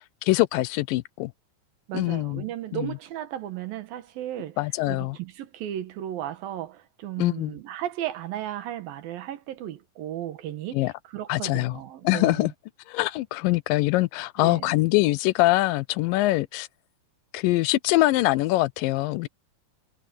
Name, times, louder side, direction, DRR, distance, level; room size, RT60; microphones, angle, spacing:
voice 1, 0.2-1.3 1.9-2.4 2.7-2.9 4.6-5.2 7.2-7.5 10.7-10.9 11.3-11.8 12.0-12.5 12.9-16.7 17.3-19.3, left 19 dB, 85° left, 2.2 m, -23 dB
voice 2, 1.9-4.6 4.9-12.5 14.4-14.8, right 12 dB, 80° right, 3.2 m, -35 dB
omnidirectional pair, 4.1 m